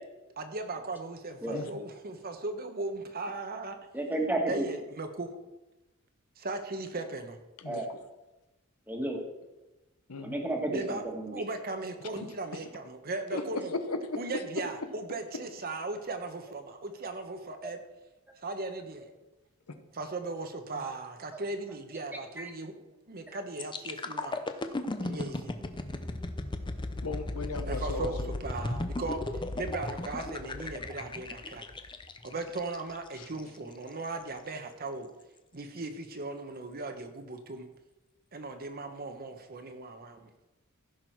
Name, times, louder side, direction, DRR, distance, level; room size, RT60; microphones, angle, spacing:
voice 1, 0.4-3.8 4.5-5.3 6.4-7.4 10.7-13.7 14.2-17.8 18.4-19.1 19.9-22.7 23.1-24.4 25.0-25.5 27.6-29.2 29.5-31.6 32.2-35.1 35.5-37.7 38.3-40.3, right 3 dB, 45° right, 7 dB, 1.0 m, -37 dB
voice 2, 1.5-1.8 7.6-8.0 10.1-10.4 12.1-12.3 13.3-14.4 27.0-28.3 33.2-33.3, left 3 dB, 75° left, 8 dB, 1.0 m, -36 dB
voice 3, 3.9-4.6 7.6-7.9 8.9-9.2 10.2-11.4 17.6-17.7 22.4-22.5 23.3-23.4, right 1 dB, 10° right, 1 dB, 1.7 m, -32 dB
sound 1, 23.6-33.4 33.9-34.1, left 2 dB, 20° left, 0.6 m, -36 dB
15.5 x 6.1 x 4.6 m, 1.0 s
head